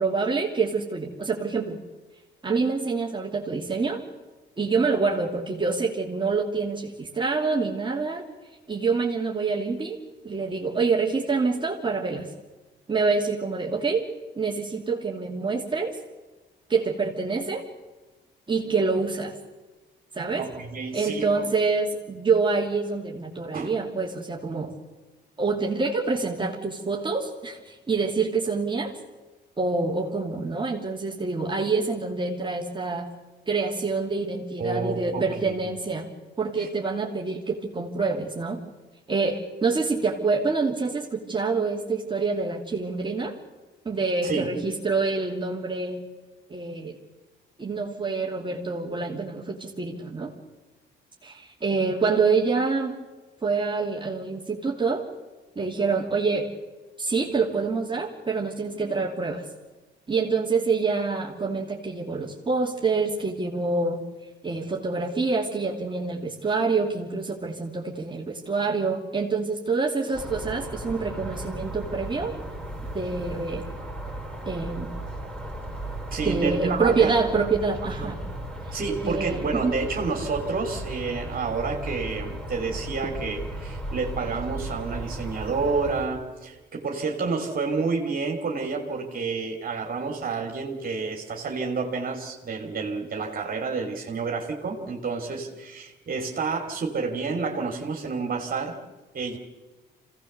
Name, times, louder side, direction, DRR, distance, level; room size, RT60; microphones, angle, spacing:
voice 1, 0.0-1.8 2.4-4.0 4.6-8.2 8.7-10.0 10.2-12.3 12.9-14.1 14.3-16.0 16.7-17.6 18.5-19.3 20.1-20.4 20.9-24.7 25.4-29.0 29.6-33.1 33.5-36.1 36.4-38.6 39.1-43.3 43.8-46.0 46.5-47.0 47.6-50.3 51.2-52.9 53.4-55.0 55.5-56.5 57.0-59.5 60.1-64.0 64.4-72.3 72.9-73.6 74.4-74.9 76.2-78.2 79.0-79.7, right 4 dB, 25° right, -2 dB, 2.9 m, -26 dB
voice 2, 20.3-21.5 23.5-23.8 34.6-35.5 36.6-36.7 44.2-44.5 76.1-77.1 77.8-78.1 78.7-98.8 99.1-99.4, right 4 dB, 50° right, 2 dB, 3.0 m, -29 dB
sound 1, 70.1-86.1, right 1 dB, 5° left, 5.0 m, -36 dB
25.5 x 17.5 x 6.8 m, 1.2 s
cardioid pair, 90°, 19 cm